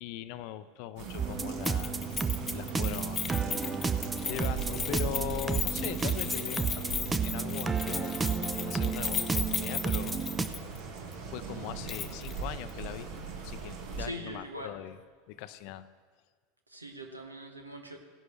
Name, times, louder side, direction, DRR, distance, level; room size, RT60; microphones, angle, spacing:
voice 1, 0.0-2.0 2.5-3.2 3.8-3.9 4.3-8.1 8.6-10.2 11.3-13.1 13.4-15.0 15.3-15.9, left 13 dB, 50° left, 12 dB, 0.5 m, -40 dB
sound 1, 1.0-14.1, right 5 dB, 55° right, 1.8 m, -40 dB
sound 2, 1.2-10.5, right 5 dB, 15° right, 0.6 m, -32 dB
Keys jangling, 1.6-10.8 11.1-11.2 11.9-12.4 12.7-12.8, left 6 dB, 25° left, 0.8 m, -36 dB
voice 2, 14.0-14.7 16.7-18.0, equal, 85° right, 4 dB, 1.3 m, -42 dB
16.5 x 11.0 x 3.4 m, 1.5 s
figure-of-eight pair, 80°, 0 cm